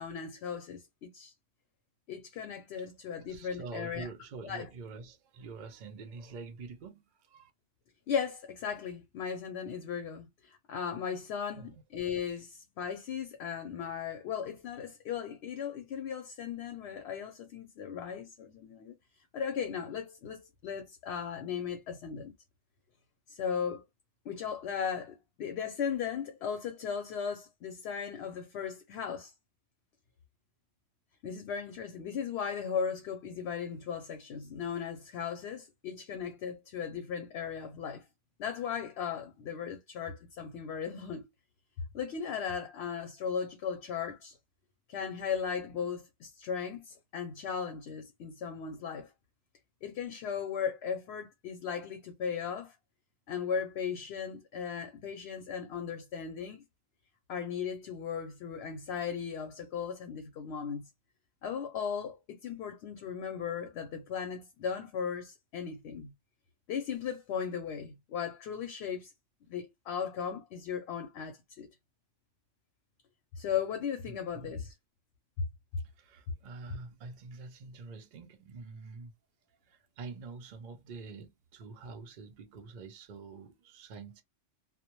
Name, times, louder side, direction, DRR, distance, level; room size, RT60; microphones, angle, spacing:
voice 1, 0.0-1.3 2.1-4.1 4.4-4.7 8.1-18.9 19.3-22.3 23.3-23.8 24.2-29.3 31.2-38.1 38.4-41.3 41.9-44.4 44.9-49.1 49.8-52.8 53.3-56.6 57.3-60.9 61.4-66.1 66.7-69.1 69.5-71.7 73.4-74.7, left 7 dB, 65° left, 0.8 m, -37 dB
voice 2, 3.2-7.5 11.5-11.8 74.1-74.6 75.9-79.1 79.5-84.2, right 4 dB, 65° right, 0.4 m, -46 dB
2.1 x 2.1 x 2.9 m
omnidirectional pair, 1.3 m